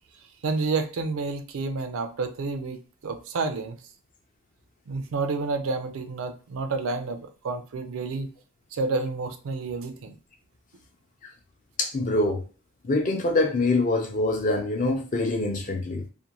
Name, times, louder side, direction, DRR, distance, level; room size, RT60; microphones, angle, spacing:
voice 1, 0.4-3.8 4.9-8.3 8.7-10.2, right 3 dB, 80° right, 0.4 m, -29 dB
voice 2, 11.8-12.4 12.8-16.0, left 2 dB, 40° left, 0.5 m, -24 dB
2.5 x 2.1 x 2.9 m
head